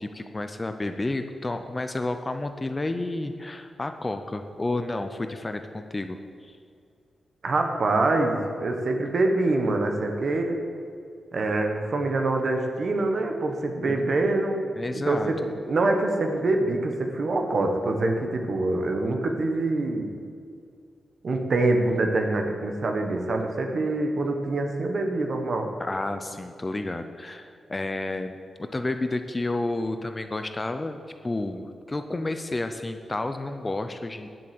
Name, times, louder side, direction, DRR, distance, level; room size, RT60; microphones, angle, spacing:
voice 1, 0.0-6.6 13.9-14.1 14.7-15.3 25.8-31.0 31.2-34.3, left 2 dB, 20° left, 8 dB, 0.5 m, -31 dB
voice 2, 7.4-10.6 11.3-14.6 14.9-15.4 15.6-20.1 21.2-25.7, right 2 dB, 45° right, 4 dB, 1.3 m, -25 dB
9.9 x 7.7 x 7.7 m, 2.3 s
wide cardioid pair, 165°, 0 cm